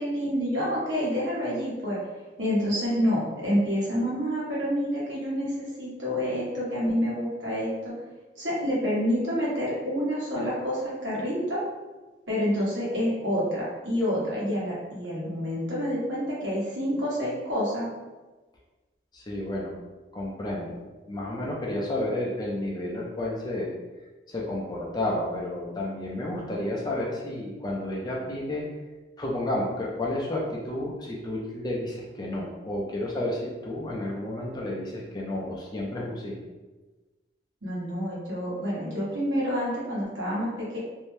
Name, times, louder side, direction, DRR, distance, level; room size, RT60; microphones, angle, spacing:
voice 1, 0.0-2.0 2.4-7.9 8.3-11.6 12.3-17.9 37.6-40.8, equal, 85° right, -7 dB, 1.1 m, -28 dB
voice 2, 19.1-19.7 20.1-20.8 21.1-23.7 24.3-28.7 29.2-36.4, left 1 dB, 20° left, -3 dB, 0.5 m, -31 dB
2.6 x 2.1 x 3.1 m, 1.2 s
head